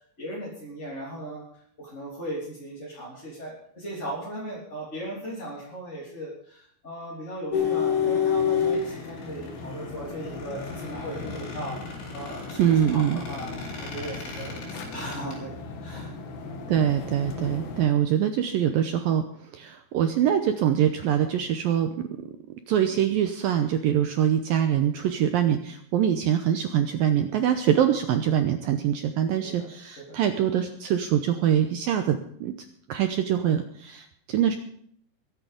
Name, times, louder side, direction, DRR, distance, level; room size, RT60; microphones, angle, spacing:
voice 1, 0.2-13.5 13.8-16.1 29.4-29.7 30.1-30.2, right 1 dB, 15° left, -6 dB, 3.1 m, -37 dB
sound 1, 7.5-17.9, left 7 dB, 65° left, 3.6 m, -31 dB
Squeak, 8.1-15.4, left 2 dB, 80° left, 7.4 m, -43 dB
voice 2, 12.6-13.2 16.7-22.3 22.7-32.6 32.9-34.6, right 9 dB, 80° right, 7 dB, 2.1 m, -24 dB
22.0 x 8.9 x 5.2 m, 0.66 s
omnidirectional pair, 5.2 m